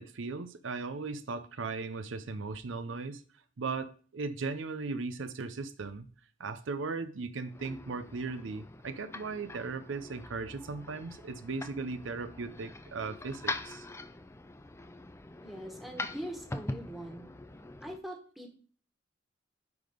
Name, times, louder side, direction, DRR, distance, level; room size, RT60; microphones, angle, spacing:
voice 1, 0.0-3.2 3.6-6.1 6.4-13.9, right 4 dB, 80° right, 0.6 m, -37 dB
sound 1, 7.4-18.0, left 2 dB, 15° left, 0.5 m, -43 dB
voice 2, 15.4-17.3 17.8-18.5, equal, ahead, 1.5 m, -42 dB
9.5 x 3.6 x 5.0 m
head